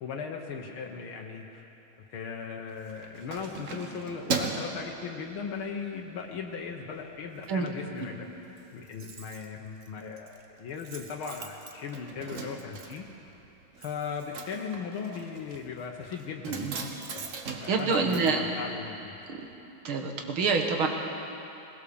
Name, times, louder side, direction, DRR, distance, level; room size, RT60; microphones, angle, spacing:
voice 1, 0.0-1.7 2.1-8.3 8.7-13.1 13.8-16.7 17.1-19.1, left 6 dB, 80° left, 1 dB, 2.0 m, -38 dB
Keys jangling, 2.7-5.8 6.2-6.5 6.8-7.5 7.8-7.9 8.1-8.2 8.4-19.2 19.5-19.6, right 4 dB, 45° right, 1.4 m, -39 dB
voice 2, 16.4-16.7 17.7-18.4 19.3-19.4 19.8-20.9, right 4 dB, 80° right, 3 dB, 2.6 m, -27 dB
20.5 x 20.0 x 7.0 m, 3.0 s
omnidirectional pair, 2.2 m